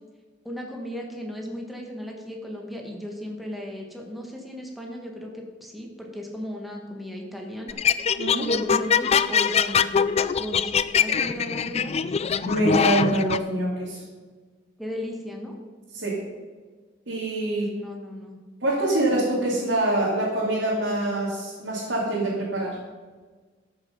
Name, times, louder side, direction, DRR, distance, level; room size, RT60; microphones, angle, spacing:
voice 1, 0.4-7.8 8.5-10.1 10.4-12.0 14.8-15.6 17.5-18.4, left 1 dB, ahead, 0 dB, 1.4 m, -36 dB
sound 1, 7.7-13.4, left 6 dB, 35° left, 0.4 m, -23 dB
voice 2, 8.2-8.5 12.4-14.0 15.9-16.2 17.1-17.7 18.6-22.8, right 1 dB, 65° right, -6 dB, 2.7 m, -25 dB
13.0 x 6.9 x 5.3 m, 1.4 s
head